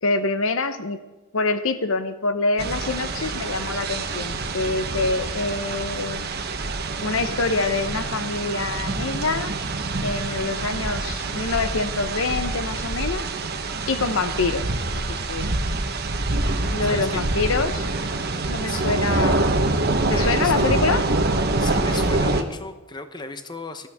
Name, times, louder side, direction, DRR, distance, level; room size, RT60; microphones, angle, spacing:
voice 1, 0.0-1.0 1.3-6.3 7.0-9.5 10.0-13.3 13.9-14.7 14.9-15.5 16.7-17.8 18.5-19.5 20.1-21.1, left 3 dB, 65° left, 10 dB, 0.9 m, -25 dB
sound 1, 2.6-22.4, right 3 dB, 50° right, 1.2 m, -26 dB
sound 2, 4.3-4.6 5.2-5.3 5.8-6.0 6.5-6.9 8.3-8.4 9.2-9.9 10.4-13.3 14.0-16.7 17.1-18.0 18.8-18.9, right 1 dB, 70° right, 1.4 m, -31 dB
voice 2, 16.8-17.2 18.7-19.6 20.0-20.9 21.6-23.9, left 3 dB, 20° left, 8 dB, 0.9 m, -35 dB
20.0 x 14.0 x 3.6 m, 1.2 s
head